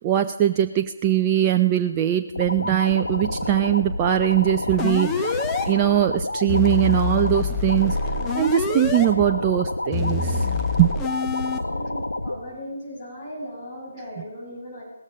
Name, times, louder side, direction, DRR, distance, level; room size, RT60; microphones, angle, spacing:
voice 1, 0.0-5.4 5.7-8.0 8.4-10.4 10.8-10.9, right 12 dB, 20° right, 6 dB, 0.5 m, -21 dB
sound 1, 2.4-12.4, left 2 dB, 75° left, 1.8 m, -29 dB
sound 2, 4.8-5.7 6.5-9.1 9.9-11.6, left 5 dB, 10° left, 1.0 m, -26 dB
voice 2, 11.5-14.8, equal, 35° left, -4 dB, 6.5 m, -37 dB
17.5 x 14.0 x 5.1 m, 1.0 s
figure-of-eight pair, 145°, 0 cm